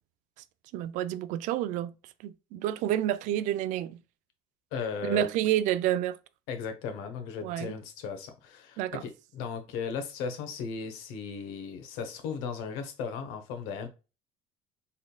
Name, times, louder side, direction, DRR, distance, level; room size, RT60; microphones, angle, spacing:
voice 1, 0.7-1.9 2.2-4.0 5.0-6.2 7.4-7.7 8.8-9.0, right 12 dB, 60° right, 0.4 m, -29 dB
voice 2, 4.7-5.3 6.5-13.9, left 5 dB, 80° left, 1.1 m, -36 dB
4.2 x 3.6 x 2.2 m
cardioid pair, 145°, 14 cm